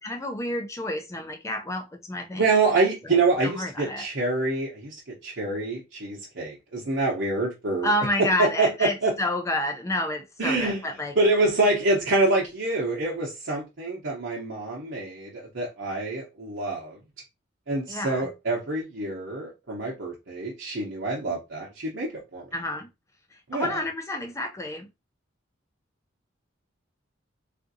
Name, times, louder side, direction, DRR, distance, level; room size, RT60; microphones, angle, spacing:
voice 1, 0.0-2.5 3.0-4.1 7.8-11.2 17.9-18.3 22.5-22.9 23.3-24.9, left 1 dB, 15° left, 0.4 m, -29 dB
voice 2, 2.3-7.9 8.2-9.1 10.4-10.8 11.2-17.0 17.7-22.4 23.5-23.8, right 2 dB, 65° right, 0.8 m, -26 dB
3.5 x 2.5 x 2.6 m
head